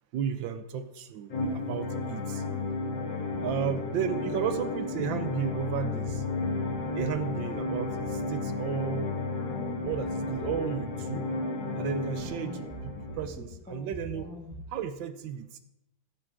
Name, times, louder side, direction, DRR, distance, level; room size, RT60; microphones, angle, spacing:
voice 1, 0.1-2.4 3.4-6.2 6.9-9.2 9.8-11.3 11.8-14.3 14.7-15.6, right 8 dB, 70° right, 10 dB, 1.4 m, -33 dB
sound 1, 1.3-13.3, left 3 dB, 60° left, 2.4 m, -33 dB
sound 2, 3.3-14.6, left 1 dB, 5° left, 1.5 m, -44 dB
12.5 x 7.3 x 4.7 m, 0.82 s
omnidirectional pair, 2.3 m